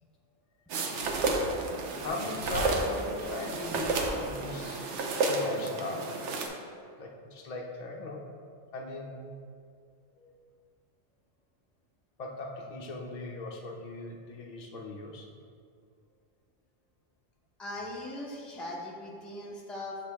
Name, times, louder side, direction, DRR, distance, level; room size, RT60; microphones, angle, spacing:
sound 1, 0.7-6.5, right 3 dB, 90° right, 1.0 m, -31 dB
voice 1, 2.0-5.0 5.3-6.3 7.0-8.3 8.7-9.3 12.2-15.3, left 2 dB, 45° left, 0 dB, 0.7 m, -38 dB
voice 2, 17.6-20.0, left 1 dB, ahead, -4 dB, 0.7 m, -40 dB
6.9 x 4.8 x 3.5 m, 2.3 s
omnidirectional pair, 1.2 m